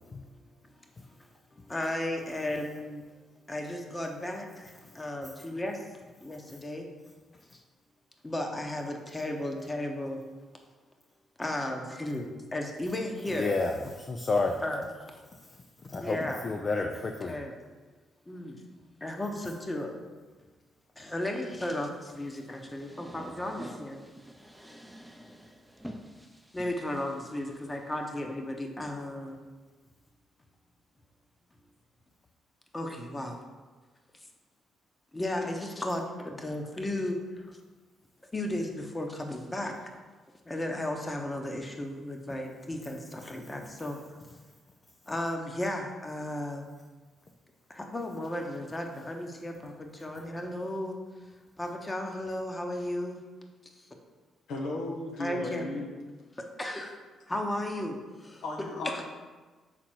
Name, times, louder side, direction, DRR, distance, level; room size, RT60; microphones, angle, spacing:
voice 1, 1.5-3.0 3.5-5.9 6.2-6.9 7.5-7.6 8.2-10.2 11.4-13.7 14.6-14.9 16.0-17.5 18.3-18.5 19.0-19.9 21.0-24.0 26.5-29.4 32.7-33.4 34.1-34.3 35.1-37.6 38.3-39.7 40.5-44.0 45.1-46.7 47.7-51.0 51.6-53.2 53.7-53.9 55.1-55.9 56.6-56.9 57.3-59.0, left 1 dB, 25° left, 1.1 m, -35 dB
voice 2, 13.3-14.6 15.3-17.4 43.8-43.9, left 3 dB, 40° left, 0.5 m, -31 dB
sound 1, 22.0-28.1, equal, ahead, 0.7 m, -48 dB
voice 3, 54.5-55.9 58.4-59.0, left 2 dB, 75° left, 1.0 m, -35 dB
6.1 x 3.8 x 4.5 m
supercardioid pair, 55°, 0 cm